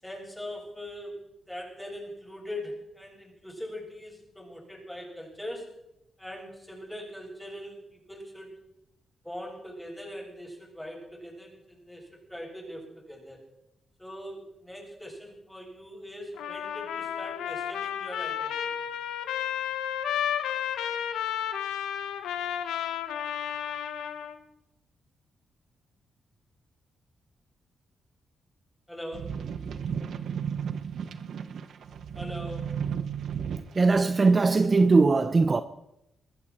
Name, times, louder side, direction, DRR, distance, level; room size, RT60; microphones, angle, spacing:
voice 1, 0.0-5.7 6.2-8.6 9.2-13.4 14.0-18.9 28.9-29.5 32.1-32.8, left 1 dB, 5° left, 7.8 m, -41 dB
Trumpet, 16.4-24.4, left 9 dB, 90° left, 1.1 m, -32 dB
sound 1, 29.1-34.0 34.6-34.7, right 7 dB, 70° right, 1.1 m, -34 dB
voice 2, 33.7-35.6, right 3 dB, 40° right, 0.8 m, -20 dB
21.5 x 14.5 x 4.5 m
cardioid pair, 60°, 0 cm